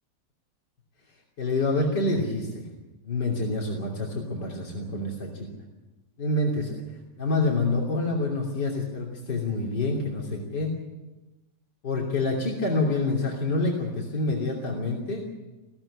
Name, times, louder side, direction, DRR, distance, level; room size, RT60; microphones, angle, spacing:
voice 1, 1.4-2.7 3.0-5.5 6.2-6.8 7.2-10.7 11.8-15.2, left 2 dB, 90° left, -2 dB, 3.8 m, -27 dB
20.5 x 16.0 x 10.0 m, 1.1 s
omnidirectional pair, 1.8 m